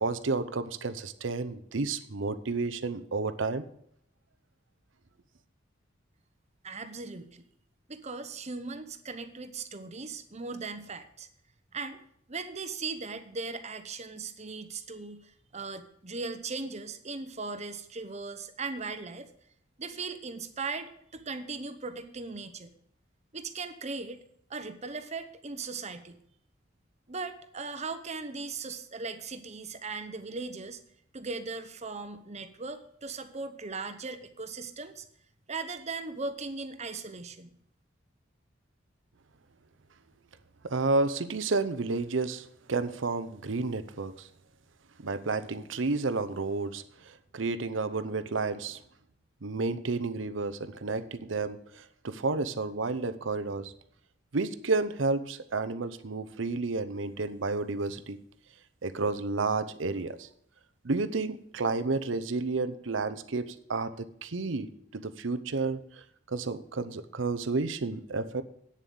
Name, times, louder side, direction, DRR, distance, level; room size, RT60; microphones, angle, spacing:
voice 1, 0.0-3.7 40.6-44.3 45.0-48.8 49.4-53.7 54.3-58.2 58.8-60.3 60.8-66.0 66.3-68.4, right 3 dB, 80° right, 0.8 m, -31 dB
voice 2, 6.6-7.4 7.9-11.3 11.7-12.0 12.3-19.3 19.8-22.7 23.3-24.2 24.5-26.2 27.1-30.8 31.1-35.0 35.5-37.6, right 4 dB, 35° right, 1.0 m, -38 dB
9.0 x 7.3 x 6.9 m
head